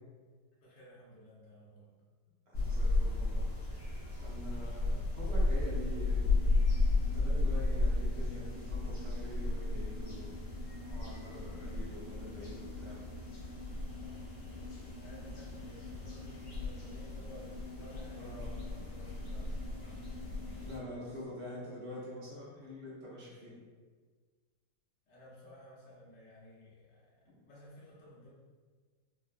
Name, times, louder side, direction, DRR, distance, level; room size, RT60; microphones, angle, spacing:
voice 1, 0.6-2.1 13.7-21.3 25.1-28.3, equal, 75° left, -6 dB, 1.5 m, -55 dB
sound 1, 2.5-20.8, left 2 dB, 50° left, 1.0 m, -34 dB
voice 2, 2.5-3.5 4.2-6.3 7.0-10.3 10.6-13.0 18.2-18.5 20.6-23.5, left 1 dB, 70° right, -8 dB, 1.7 m, -46 dB
sound 2, 5.6-21.3, left 2 dB, 20° right, 1.0 m, -50 dB
4.5 x 2.1 x 2.4 m, 1.5 s
omnidirectional pair, 1.9 m